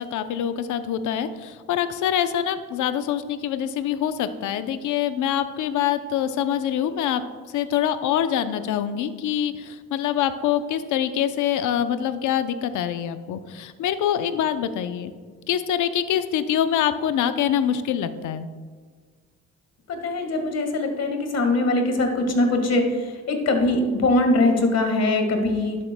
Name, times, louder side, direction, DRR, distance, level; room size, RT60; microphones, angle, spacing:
voice 1, 0.0-7.2 7.5-15.1 15.5-18.5, left 9 dB, 80° left, 11 dB, 0.6 m, -25 dB
voice 2, 19.9-22.8 23.3-25.8, left 2 dB, 55° left, 4 dB, 1.6 m, -22 dB
11.5 x 7.5 x 2.2 m, 1.5 s
cardioid pair, 90°, 30 cm